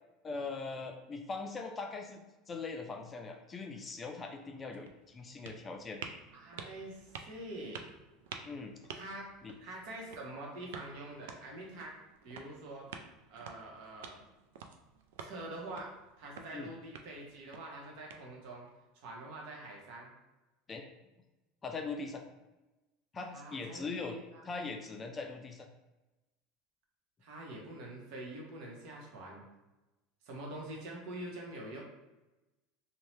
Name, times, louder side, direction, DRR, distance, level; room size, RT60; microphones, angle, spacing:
voice 1, 0.2-6.0 8.5-8.7 9.4-9.5 16.5-16.7 20.7-20.8 21.6-22.3 23.1-24.2 24.5-25.7, left 4 dB, 25° left, 4 dB, 0.4 m, -41 dB
sound 1, 4.3-18.7, right 6 dB, 85° right, 0.3 m, -51 dB
voice 2, 6.3-7.8 8.9-9.3 9.6-11.9 12.2-12.9 13.3-14.2 15.2-15.9 16.2-18.7 18.9-20.1 23.3-24.5 27.2-29.4 30.2-31.8, right 1 dB, 65° right, -2 dB, 0.9 m, -45 dB
2.7 x 2.1 x 3.1 m, 1.1 s
supercardioid pair, 120°, 0 cm